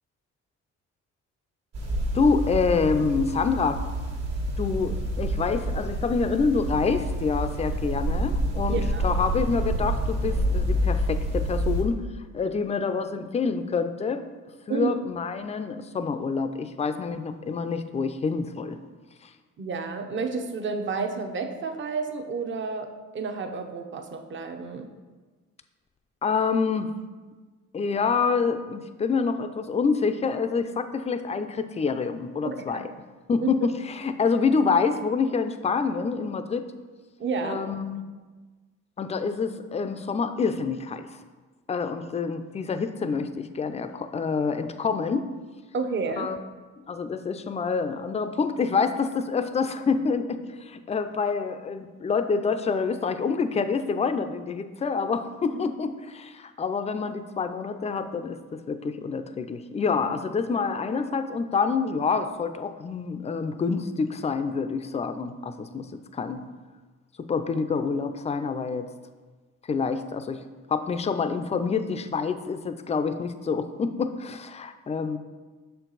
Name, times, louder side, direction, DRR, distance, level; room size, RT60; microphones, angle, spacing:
sound 1, 1.7-11.8, right 1 dB, 55° right, 1.4 m, -28 dB
voice 1, 2.1-3.8 4.6-12.0 12.3-14.2 14.7-18.8 26.2-26.9 27.7-32.8 33.3-33.6 33.9-36.7 37.4-38.0 39.0-41.1 41.7-45.3 46.2-46.4 46.9-65.9 66.1-66.4 67.2-68.9 69.7-70.4 70.7-75.2, left 5 dB, 20° left, 9 dB, 0.4 m, -27 dB
voice 2, 8.7-9.1 14.7-14.9 19.6-24.9 32.4-32.9 33.4-33.5 37.2-37.6 45.7-46.3, right 5 dB, 40° right, 6 dB, 0.7 m, -30 dB
6.5 x 4.6 x 3.9 m, 1.3 s
cardioid pair, 90°, 30 cm